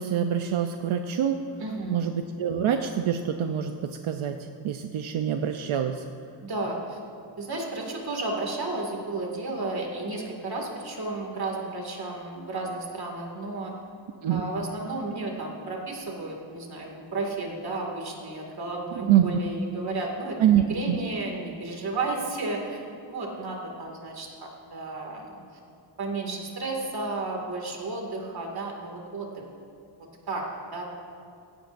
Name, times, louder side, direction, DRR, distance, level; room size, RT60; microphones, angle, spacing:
voice 1, 0.0-1.4 1.9-2.1 2.4-4.4 4.6-6.0 14.2-14.4 19.1-19.3 20.4-21.0, right 9 dB, 85° right, 6 dB, 0.7 m, -25 dB
voice 2, 1.6-2.0 6.4-7.0 7.4-13.7 14.3-25.4 26.0-29.4 30.3-30.5 30.7-30.8, right 2 dB, 50° right, 0 dB, 2.2 m, -33 dB
17.0 x 16.0 x 2.6 m, 2.4 s
wide cardioid pair, 160°, 47 cm